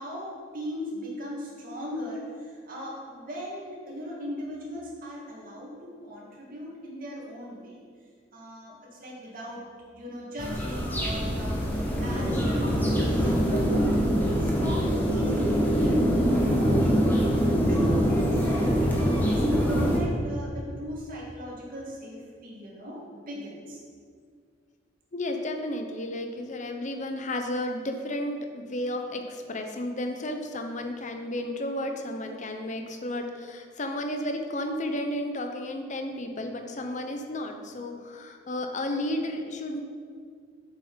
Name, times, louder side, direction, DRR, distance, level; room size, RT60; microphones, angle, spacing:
voice 1, 0.0-7.8 8.3-12.8 13.2-18.7 19.3-23.8, equal, 50° right, -3 dB, 2.3 m, -38 dB
sound 1, 10.4-20.0, equal, 10° left, 1.5 m, -24 dB
voice 2, 25.1-39.8, left 1 dB, 40° left, 5 dB, 0.9 m, -33 dB
8.2 x 6.7 x 5.7 m, 2.1 s
head